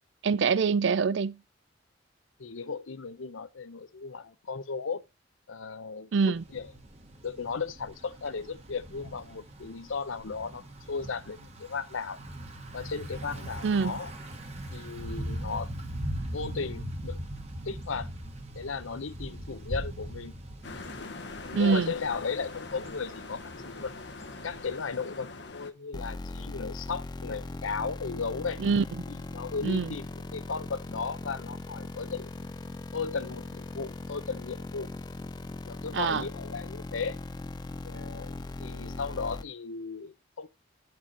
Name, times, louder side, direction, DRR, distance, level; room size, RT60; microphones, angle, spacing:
voice 1, 0.2-1.4 6.1-6.4 13.6-14.0 21.5-21.9 28.6-28.8 29.6-29.9 35.9-36.2, right 5 dB, 65° right, 0.4 m, -25 dB
voice 2, 2.4-5.0 5.5-6.7 7.2-10.6 10.9-12.2 12.7-14.1 14.7-15.7 16.3-17.2 17.6-18.1 18.5-20.3 21.0-21.1 21.5-23.4 23.7-23.9 24.4-28.6 29.1-32.3 32.9-34.9 35.6-37.2 37.8-40.5, left 5 dB, 90° left, 0.7 m, -36 dB
Thunder / Bicycle, 6.4-24.8, right 1 dB, 35° right, 1.2 m, -41 dB
sound 1, 20.6-25.7, left 3 dB, 60° left, 0.9 m, -43 dB
sound 2, 25.9-39.4, left 2 dB, 20° left, 0.4 m, -39 dB
9.1 x 4.7 x 4.1 m
head